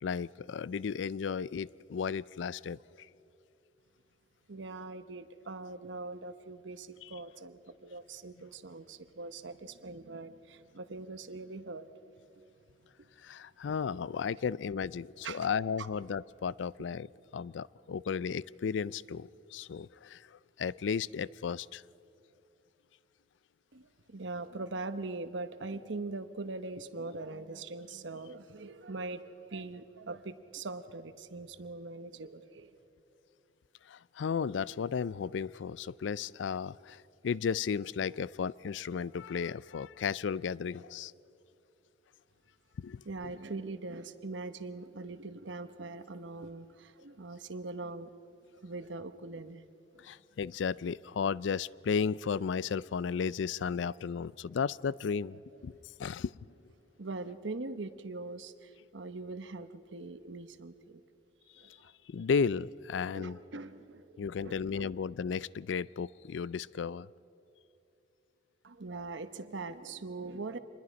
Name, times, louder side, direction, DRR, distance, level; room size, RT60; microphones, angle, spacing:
voice 1, 0.0-2.8 13.2-17.1 17.3-20.2 20.6-21.8 33.9-41.1 42.8-43.3 50.0-55.7 56.0-56.3 62.1-63.4 64.2-67.1, left 6 dB, 75° left, 21 dB, 0.4 m, -34 dB
voice 2, 4.5-11.9 13.0-13.1 15.2-15.5 15.8-15.9 23.7-32.7 43.0-48.1 48.6-49.6 49.9-50.0 57.0-61.0 61.6-61.8 63.0-65.0 68.6-70.6, right 3 dB, 80° right, 11 dB, 1.0 m, -42 dB
26.0 x 21.0 x 5.2 m, 2.8 s
head